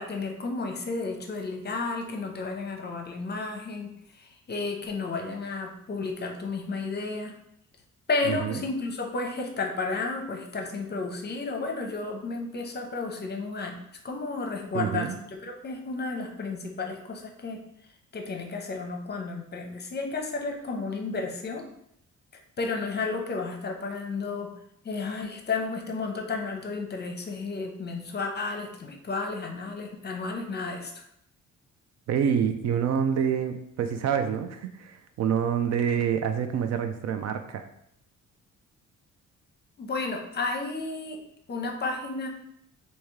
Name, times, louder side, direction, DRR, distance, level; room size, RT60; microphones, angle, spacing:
voice 1, 0.0-7.3 8.1-13.8 14.0-17.6 18.1-21.6 22.6-24.5 24.8-31.0 39.8-41.2 41.5-42.3, left 3 dB, 35° left, 2 dB, 0.7 m, -32 dB
voice 2, 8.3-8.6 14.7-15.2 32.1-37.7, right 8 dB, 60° right, 8 dB, 0.4 m, -27 dB
3.4 x 2.8 x 3.1 m, 0.74 s
cardioid pair, 90°, 30 cm